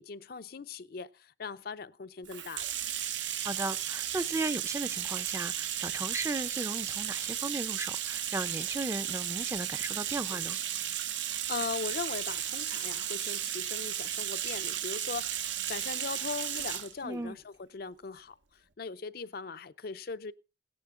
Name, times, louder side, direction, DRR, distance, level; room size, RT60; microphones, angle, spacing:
voice 1, 0.0-2.7 10.3-10.5 11.5-18.3 18.8-20.3, left 5 dB, 55° left, 0.5 m, -39 dB
Bathtub (filling or washing), 2.3-16.9, right 10 dB, 80° right, 1.1 m, -34 dB
voice 2, 3.4-10.6 17.0-17.4, right 2 dB, 15° right, 0.5 m, -36 dB
17.0 x 10.5 x 3.7 m
head